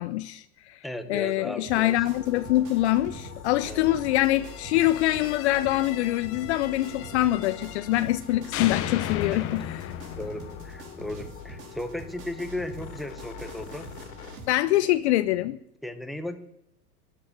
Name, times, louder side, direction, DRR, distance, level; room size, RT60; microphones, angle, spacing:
voice 1, 0.0-0.8 1.1-9.6 14.5-15.6, left 15 dB, 45° left, 0.5 m, -24 dB
voice 2, 0.8-2.0 3.6-3.9 9.5-9.6 10.2-13.9 15.8-16.4, left 1 dB, ahead, 0.9 m, -36 dB
sound 1, 1.7-14.5, right 3 dB, 85° right, 4.7 m, -46 dB
sound 2, 2.0-14.4, left 5 dB, 65° left, 3.0 m, -44 dB
sound 3, 4.4-8.2 8.5-11.5, left 12 dB, 30° left, 1.0 m, -36 dB
13.5 x 10.5 x 8.7 m
hypercardioid pair, 125°, 48 cm